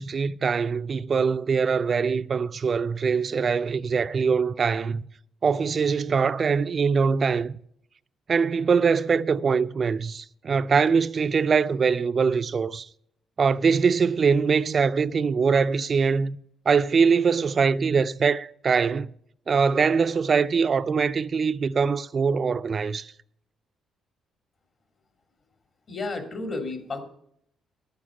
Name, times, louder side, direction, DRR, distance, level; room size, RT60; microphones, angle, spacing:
voice 1, 0.0-5.0 5.4-7.6 8.3-12.9 13.4-16.4 16.7-19.1 19.5-23.1, right 5 dB, 45° right, 0.4 m, -23 dB
voice 2, 25.9-27.0, left 3 dB, 45° left, 2.4 m, -32 dB
11.5 x 8.5 x 5.9 m
cardioid pair, 90°, 0 cm